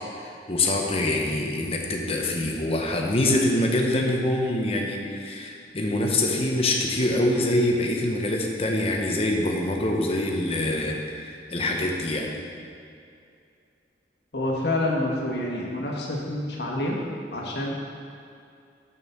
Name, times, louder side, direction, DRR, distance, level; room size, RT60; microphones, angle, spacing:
voice 1, 0.1-12.3, left 1 dB, 35° left, 0 dB, 0.9 m, -25 dB
voice 2, 14.3-17.0 17.3-17.7, left 1 dB, 70° left, -3 dB, 1.5 m, -27 dB
6.8 x 5.5 x 6.8 m, 2.5 s
head